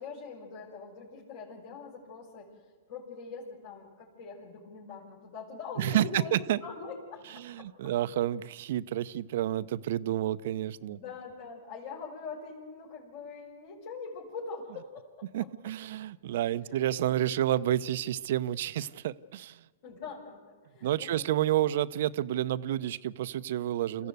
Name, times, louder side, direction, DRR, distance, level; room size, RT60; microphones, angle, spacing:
voice 1, 0.0-2.5 2.9-7.9 10.9-15.2 16.6-16.8 19.8-21.2 24.0-24.1, left 4 dB, 60° left, -4 dB, 5.1 m, -43 dB
voice 2, 5.8-6.6 7.3-11.0 15.3-19.7 20.8-24.1, right 12 dB, 60° right, 15 dB, 0.7 m, -30 dB
27.0 x 15.0 x 8.0 m, 1.4 s
hypercardioid pair, 115°, 0 cm